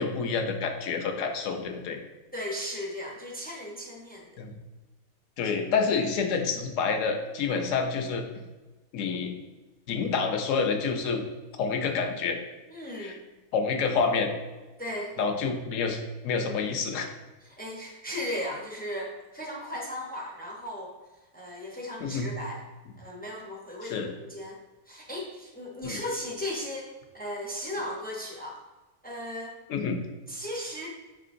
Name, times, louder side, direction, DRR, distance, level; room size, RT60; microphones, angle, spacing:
voice 1, 0.0-2.0 4.4-4.5 5.4-8.3 8.9-9.3 9.9-11.2 11.6-12.4 13.0-13.2 13.5-14.3 15.2-17.1 22.0-22.3 23.8-24.1 25.8-26.0 29.7-30.0, left 5 dB, 70° left, 5 dB, 0.9 m, -28 dB
voice 2, 2.3-4.4 12.7-13.2 14.8-15.1 17.4-20.9 21.3-22.6 23.0-24.6 24.9-26.9 27.1-28.6 29.0-29.6 30.3-30.9, left 1 dB, 15° left, -2 dB, 0.3 m, -36 dB
5.5 x 3.7 x 2.5 m, 1.2 s
omnidirectional pair, 1.4 m